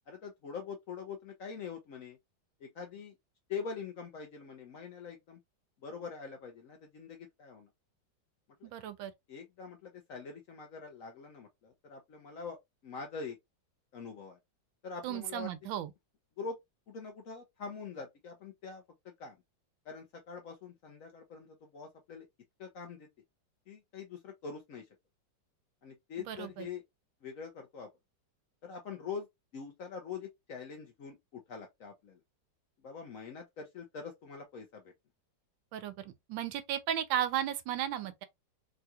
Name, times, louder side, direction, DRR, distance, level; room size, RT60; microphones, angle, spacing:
voice 1, 0.1-2.2 2.6-3.1 3.5-5.4 5.8-7.7 8.6-8.7 9.3-12.6 12.8-13.4 13.9-14.4 14.8-15.5 16.4-16.6 16.9-19.4 19.8-22.3 22.6-23.1 23.7-24.9 25.8-26.8 27.2-27.9 28.6-29.3 29.5-32.2 32.8-34.9, left 5 dB, 65° left, 0.8 m, -44 dB
voice 2, 8.6-9.1 15.0-15.9 26.3-26.7 35.7-38.2, right 11 dB, 90° right, 1.4 m, -35 dB
3.7 x 2.3 x 2.8 m
omnidirectional pair, 2.0 m